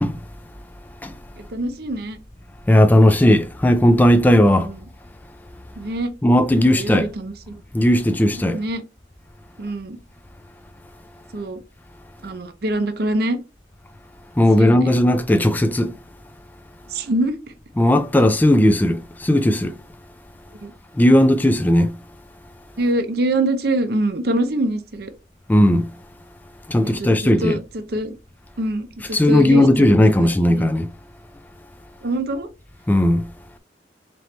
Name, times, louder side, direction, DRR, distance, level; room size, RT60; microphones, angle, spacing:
voice 1, 1.4-2.2 4.5-4.8 5.8-6.1 6.5-7.6 8.3-8.8 9.6-10.0 11.3-11.6 12.2-13.4 14.6-15.0 16.9-17.5 20.6-20.7 22.8-25.1 26.8-28.2 28.6-29.9 30.2-30.7 32.0-32.5, right 1 dB, 55° right, 0.6 m, -25 dB
voice 2, 2.7-4.7 6.2-7.1 7.7-8.6 14.4-15.9 17.8-19.7 21.0-21.9 25.5-25.9 26.7-27.6 29.1-30.9 32.9-33.3, left 1 dB, 10° left, 0.3 m, -16 dB
4.3 x 3.0 x 3.1 m
head